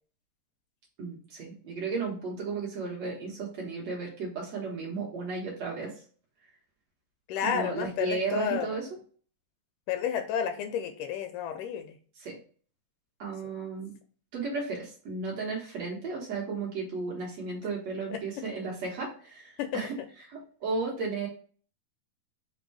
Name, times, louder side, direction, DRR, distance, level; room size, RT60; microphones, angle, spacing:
voice 1, 1.0-5.9 7.4-8.9 12.2-12.4 13.2-13.9 14.3-21.3, right 4 dB, 65° right, -3 dB, 1.9 m, -34 dB
voice 2, 7.3-8.7 9.9-12.0 13.4-13.5 18.1-18.2 19.6-19.9, left 8 dB, 80° left, 7 dB, 2.0 m, -31 dB
5.3 x 2.2 x 4.5 m, 0.43 s
omnidirectional pair, 3.8 m